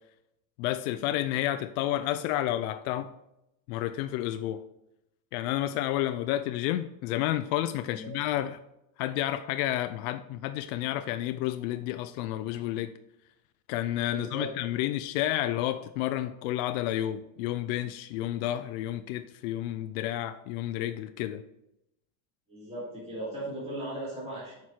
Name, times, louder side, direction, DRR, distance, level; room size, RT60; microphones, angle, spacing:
voice 1, 0.6-3.1 3.7-4.7 5.3-8.6 9.0-12.9 13.7-21.4, left 13 dB, 85° left, 0.6 m, -30 dB
voice 2, 14.1-14.5 22.5-24.6, right 1 dB, 15° right, 3.2 m, -37 dB
9.4 x 6.0 x 4.4 m
cardioid pair, 170°, 42 cm